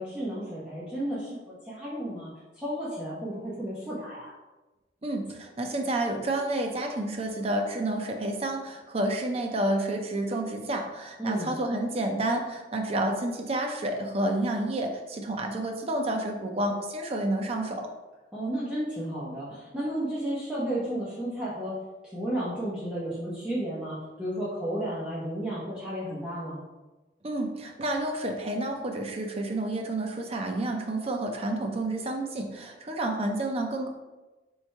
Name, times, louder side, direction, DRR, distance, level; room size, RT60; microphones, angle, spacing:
voice 1, 0.0-4.3 11.2-11.5 18.3-21.7 22.0-26.6, right 1 dB, 5° right, -10 dB, 0.8 m, -33 dB
voice 2, 5.0-17.9 27.2-33.9, right 1 dB, 35° right, 3 dB, 0.5 m, -30 dB
3.3 x 3.2 x 4.4 m, 1.1 s
head